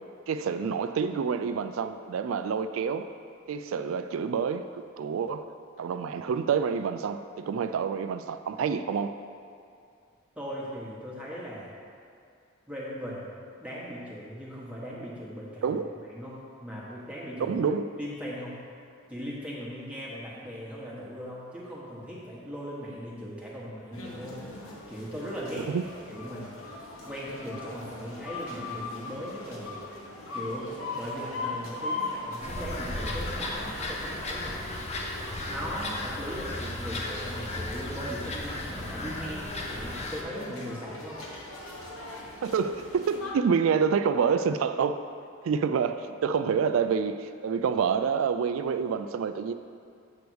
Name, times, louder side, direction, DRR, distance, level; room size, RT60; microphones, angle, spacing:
voice 1, 0.3-3.1 3.5-5.4 5.8-9.1 15.6-15.9 17.5-17.9 25.6-25.8 42.4-45.0 45.4-49.5, right 6 dB, 80° right, 10 dB, 0.3 m, -27 dB
voice 2, 10.4-11.7 12.7-13.3 13.6-15.7 16.1-17.6 18.0-18.6 19.1-24.5 24.9-25.7 26.1-26.6 27.0-29.8 30.3-34.8 35.5-41.2, equal, 5° right, -7 dB, 1.2 m, -39 dB
sound 1, 23.9-43.3, left 2 dB, 75° left, 1.2 m, -40 dB
sound 2, 32.4-40.2, left 2 dB, 35° left, 0.7 m, -35 dB
8.0 x 3.4 x 6.2 m, 2.5 s
head